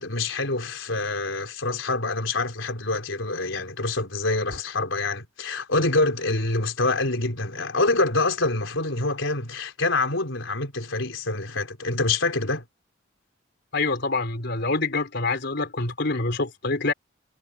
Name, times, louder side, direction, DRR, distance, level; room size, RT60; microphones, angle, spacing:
voice 1, 0.0-12.6, left 2 dB, 85° left, 4.1 m, -26 dB
voice 2, 13.7-16.9, left 3 dB, 60° left, 3.9 m, -26 dB
head